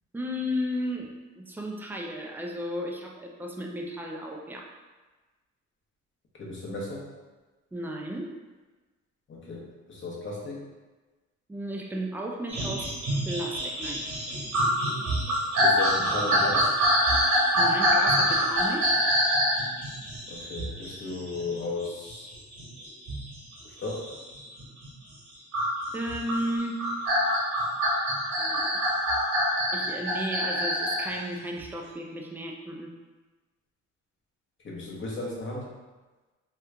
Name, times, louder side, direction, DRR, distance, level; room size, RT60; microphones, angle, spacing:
voice 1, 0.1-4.7 7.7-8.3 11.5-14.0 17.6-18.9 25.9-26.8 28.4-28.7 29.7-32.9, equal, 5° right, 0 dB, 0.4 m, -34 dB
voice 2, 6.4-7.0 9.3-10.6 15.6-16.8 20.3-22.3 23.6-24.1 34.6-35.7, left 2 dB, 40° left, -3 dB, 1.0 m, -35 dB
sound 1, 12.5-24.9 25.5-31.1 31.6-31.7, equal, 65° right, 1.3 m, -26 dB
3.0 x 2.4 x 3.3 m, 1.2 s
cardioid pair, 90°, 30 cm